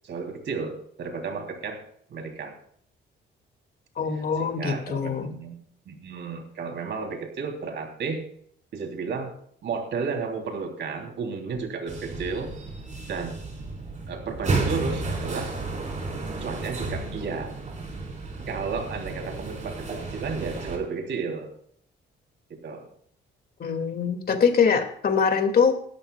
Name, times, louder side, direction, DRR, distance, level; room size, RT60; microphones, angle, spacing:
voice 1, 0.0-0.7 1.0-1.8 2.1-2.5 4.1-5.6 5.8-8.2 8.7-9.3 9.6-12.5 13.1-13.4 14.1-15.5 16.4-17.5 18.5-21.5 22.5-22.9, right 5 dB, 65° right, 3 dB, 3.4 m, -32 dB
voice 2, 4.0-5.3 23.6-25.8, left 6 dB, 50° left, 6 dB, 2.4 m, -23 dB
sound 1, 11.9-20.8, right 3 dB, 40° right, 4.7 m, -32 dB
18.5 x 13.0 x 2.4 m, 0.64 s
cardioid pair, 90°, 20 cm